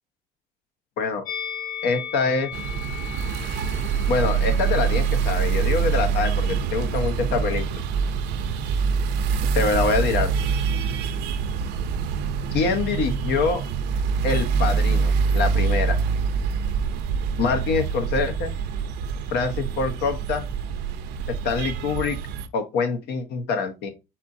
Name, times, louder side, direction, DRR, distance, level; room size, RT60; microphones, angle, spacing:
Musical instrument, 1.2-6.5 6.7-7.0, left 8 dB, 45° left, 2.7 m, -37 dB
voice 1, 1.8-2.5 4.1-7.8 9.5-10.3 12.5-13.6 14.2-16.0 17.4-18.5 19.3-20.5 21.3-22.2 22.5-23.9, left 4 dB, 85° left, 1.0 m, -25 dB
sound 1, 2.5-22.5, right 6 dB, 80° right, 0.6 m, -25 dB
4.3 x 4.2 x 2.6 m
cardioid pair, 110°, 17 cm